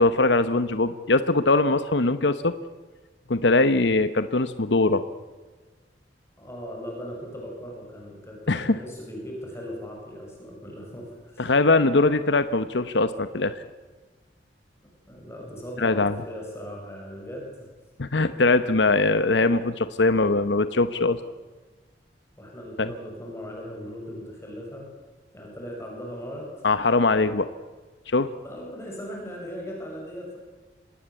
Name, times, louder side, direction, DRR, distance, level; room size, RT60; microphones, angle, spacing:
voice 1, 0.0-2.5 3.3-5.0 8.5-8.8 11.4-13.6 15.8-16.2 18.0-21.2 22.8-22.9 26.6-27.5 28.1-28.3, left 3 dB, 85° left, 12 dB, 1.0 m, -21 dB
voice 2, 6.4-11.5 15.1-17.7 22.4-24.9 25.3-26.6 28.4-30.4, equal, 15° left, -1 dB, 6.7 m, -38 dB
26.0 x 19.0 x 8.3 m, 1.3 s
head